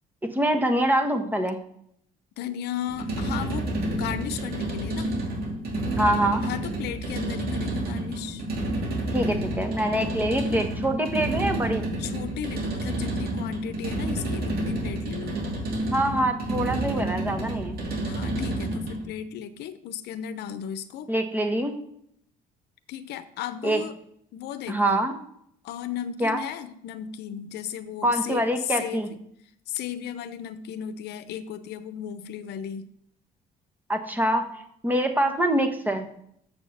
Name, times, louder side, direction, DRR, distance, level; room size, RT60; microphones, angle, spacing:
voice 1, 0.3-1.6 6.0-6.4 9.1-11.9 15.9-17.8 21.1-21.7 23.6-23.8 24.7-25.2 26.2-26.4 28.0-29.1 33.9-34.5 34.8-36.1, right 1 dB, 10° right, 6 dB, 1.2 m, -25 dB
voice 2, 2.4-5.2 6.4-8.5 12.0-15.4 18.0-21.1 22.9-23.9 24.3-25.1 25.6-29.2 29.7-32.9, left 9 dB, 80° left, 11 dB, 0.7 m, -35 dB
sound 1, 2.9-19.0, right 1 dB, 65° right, 2.8 m, -29 dB
7.4 x 6.2 x 6.5 m, 0.71 s
cardioid pair, 110°, 17 cm